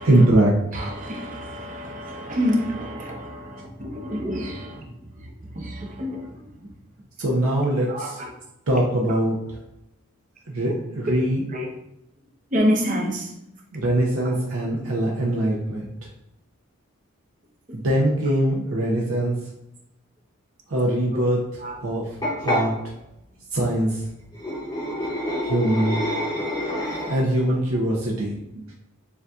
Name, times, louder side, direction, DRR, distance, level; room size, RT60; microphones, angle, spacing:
voice 1, 0.0-0.5 7.2-8.2 8.7-9.6 10.5-11.4 13.7-15.9 17.7-19.4 20.7-21.4 21.8-22.1 22.4-22.8 23.5-24.0 25.4-26.0 27.1-28.6, right 1 dB, 75° right, -2 dB, 0.7 m, -22 dB
voice 2, 0.7-6.7 7.9-8.3 9.1-9.2 11.5-11.7 12.5-13.3 14.2-14.3 17.7-17.8 18.7-18.8 21.1-21.2 21.6-21.8 22.3-22.4, equal, 35° right, 0 dB, 0.7 m, -28 dB
sound 1, 22.2-22.6 24.3-27.4, equal, 15° left, 0.8 m, -27 dB
6.9 x 2.6 x 2.3 m, 0.86 s
head